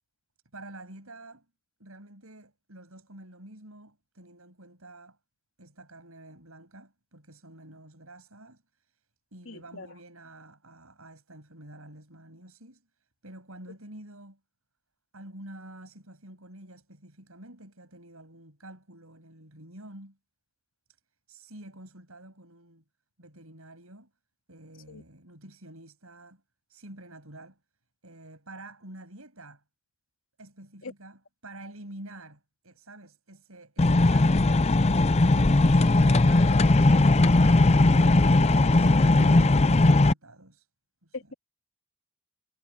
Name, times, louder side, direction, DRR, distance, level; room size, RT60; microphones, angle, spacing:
voice 1, 0.5-1.5 1.8-5.2 5.6-9.0 9.3-12.9 13.2-14.4 15.1-20.2 21.3-22.8 23.2-24.1 24.5-26.4 26.7-27.6 28.0-29.6 30.4-34.8 35.4-40.7 41.0-41.3, right 1 dB, 80° right, 7.5 m, -48 dB
voice 2, 9.4-9.9 24.9-25.0 30.8-30.9 41.1-41.3, left 3 dB, 65° left, 3.1 m, -40 dB
sound 1, 33.8-40.1, left 2 dB, 30° left, 0.5 m, -19 dB
head